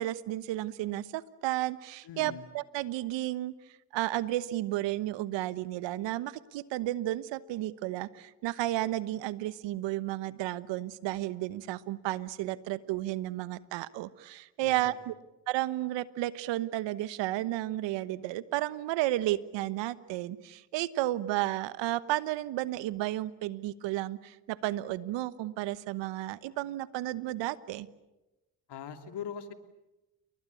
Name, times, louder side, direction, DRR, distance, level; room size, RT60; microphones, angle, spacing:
voice 1, 0.0-3.5 3.9-15.1 15.5-27.9, right 15 dB, 75° right, 16 dB, 1.2 m, -32 dB
voice 2, 2.0-2.5 14.6-14.9 28.7-29.5, left 7 dB, 65° left, 8 dB, 2.9 m, -41 dB
29.5 x 22.0 x 8.4 m, 1.0 s
hypercardioid pair, 55°, 44 cm